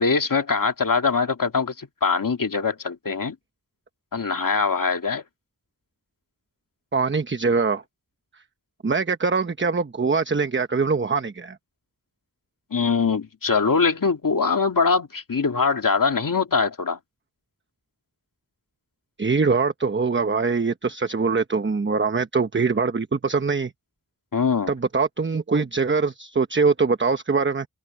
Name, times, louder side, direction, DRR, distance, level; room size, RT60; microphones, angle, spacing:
voice 1, 0.0-3.3 4.1-5.2 12.7-17.0 24.3-24.7, left 5 dB, 85° left, 2.5 m, -22 dB
voice 2, 6.9-7.8 8.8-11.6 19.2-23.7 24.7-27.7, right 4 dB, 35° right, 1.0 m, -23 dB
wide cardioid pair, 75°, 32 cm